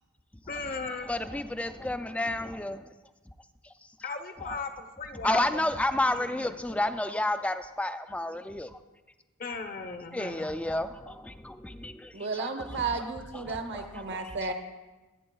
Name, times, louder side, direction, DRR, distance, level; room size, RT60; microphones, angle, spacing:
voice 1, 0.5-1.1 4.0-5.6 6.1-6.9 9.4-10.5, left 4 dB, 40° left, 5 dB, 0.8 m, -37 dB
voice 2, 1.1-2.8 4.5-4.6 5.2-8.7 10.1-12.1 12.4-12.8 13.3-14.2, left 1 dB, 5° left, 10 dB, 0.3 m, -31 dB
voice 3, 12.1-14.5, right 4 dB, 55° right, 6 dB, 0.9 m, -33 dB
24.0 x 8.6 x 2.3 m, 1.2 s
head